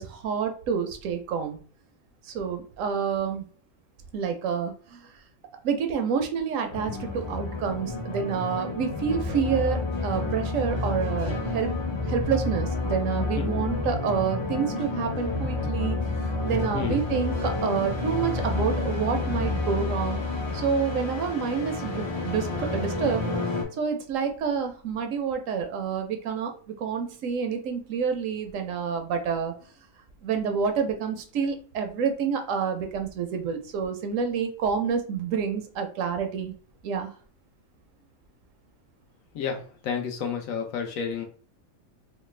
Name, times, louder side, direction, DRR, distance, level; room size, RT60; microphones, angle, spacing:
voice 1, 0.0-1.6 2.3-3.4 4.1-5.1 5.6-9.8 10.0-11.7 12.1-16.0 16.4-20.2 20.5-23.3 23.7-26.5 26.8-29.5 30.2-36.5 36.8-37.1, right 6 dB, 70° right, 6 dB, 0.9 m, -28 dB
sound 1, 6.7-23.6, left 3 dB, 40° left, 0.4 m, -29 dB
voice 2, 13.3-13.7 16.4-17.0 39.3-41.2, left 6 dB, 75° left, 3 dB, 1.1 m, -31 dB
3.2 x 2.1 x 3.1 m, 0.43 s
omnidirectional pair, 1.5 m